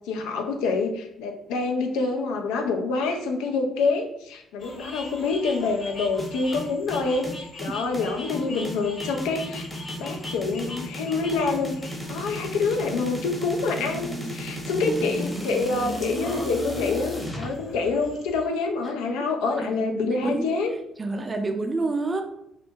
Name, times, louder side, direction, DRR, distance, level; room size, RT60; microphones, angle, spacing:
voice 1, 0.1-9.7 10.0-11.8 12.1-20.7, left 4 dB, 65° left, 3 dB, 0.3 m, -26 dB
sound 1, 4.6-18.4, left 2 dB, 45° left, 0.8 m, -42 dB
sound 2, 6.2-17.5, equal, 5° left, 0.8 m, -34 dB
voice 2, 13.8-15.0 19.6-20.4 21.0-22.2, right 3 dB, 30° right, 5 dB, 0.4 m, -30 dB
2.4 x 2.1 x 2.7 m, 0.78 s
figure-of-eight pair, 45°, 0 cm